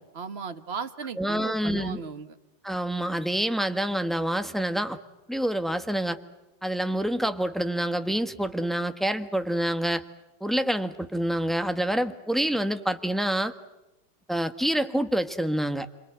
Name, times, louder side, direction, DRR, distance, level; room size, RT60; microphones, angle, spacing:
voice 1, 0.1-2.4, right 5 dB, 35° right, 9 dB, 1.4 m, -36 dB
voice 2, 1.2-2.0 2.6-5.0 5.3-6.2 6.6-10.0 10.4-13.5 14.3-15.9, right 1 dB, ahead, 8 dB, 1.0 m, -27 dB
30.0 x 23.0 x 8.0 m, 0.96 s
omnidirectional pair, 2.1 m